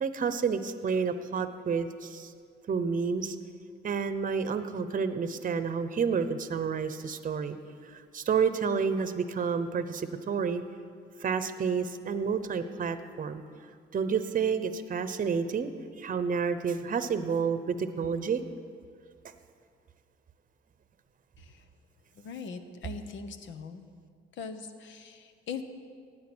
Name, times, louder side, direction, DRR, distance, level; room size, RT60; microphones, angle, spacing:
voice 1, 0.0-2.3 2.7-3.4 3.8-7.6 7.9-10.6 11.2-13.4 13.9-18.4, right 6 dB, 40° right, 11 dB, 0.8 m, -30 dB
voice 2, 22.2-23.9 24.3-25.6, left 5 dB, 70° left, 8 dB, 1.1 m, -41 dB
16.5 x 9.4 x 6.2 m, 2.2 s
cardioid pair, 90°, 20 cm